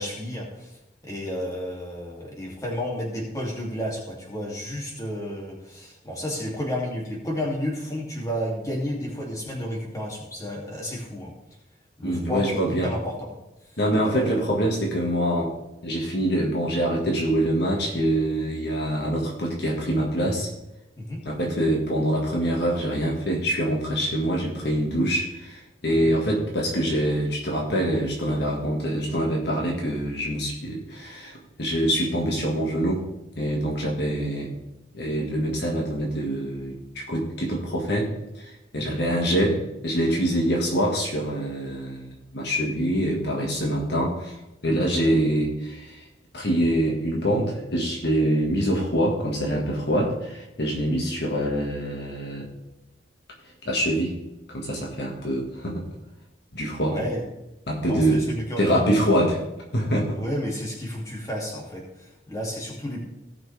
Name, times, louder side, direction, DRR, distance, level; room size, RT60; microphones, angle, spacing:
voice 1, 0.0-11.3 12.0-13.3 13.7-14.5 21.0-21.2 26.0-26.1 38.7-39.0 44.8-44.9 50.9-51.0 56.9-57.2 57.9-59.0 60.1-63.0, equal, 15° left, -3 dB, 2.6 m, -32 dB
voice 2, 12.0-12.9 13.8-15.5 15.8-20.5 21.3-33.1 33.4-34.5 34.9-44.4 44.6-46.0 46.3-52.5 53.7-54.2 54.5-55.9 56.5-57.0 57.7-58.2 58.6-59.4 59.7-60.2, right 1 dB, 55° left, -1 dB, 1.7 m, -25 dB
17.5 x 6.1 x 3.4 m, 0.93 s
head